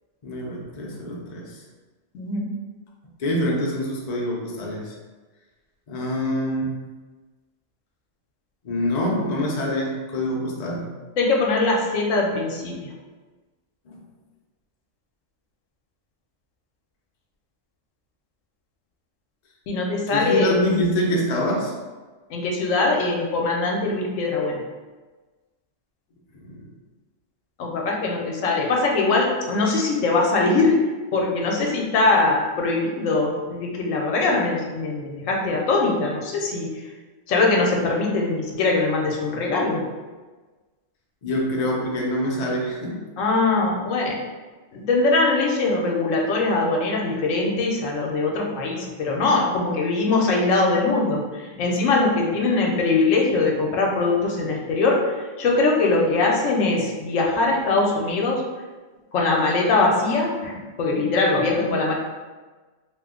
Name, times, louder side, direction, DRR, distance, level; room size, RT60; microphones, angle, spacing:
voice 1, 0.2-1.6 3.2-4.9 5.9-6.7 8.6-10.9 13.9-14.0 20.1-21.7 26.3-26.7 41.2-43.0, left 1 dB, 50° left, -2 dB, 0.5 m, -25 dB
voice 2, 2.1-2.5 11.2-12.8 19.7-20.5 22.3-24.6 27.6-30.8 31.1-36.7 37.3-39.8 43.2-44.2 44.7-55.0 55.4-58.4 59.1-61.9, left 3 dB, 80° left, -1 dB, 1.0 m, -22 dB
2.9 x 2.2 x 3.5 m, 1.3 s
omnidirectional pair, 1.3 m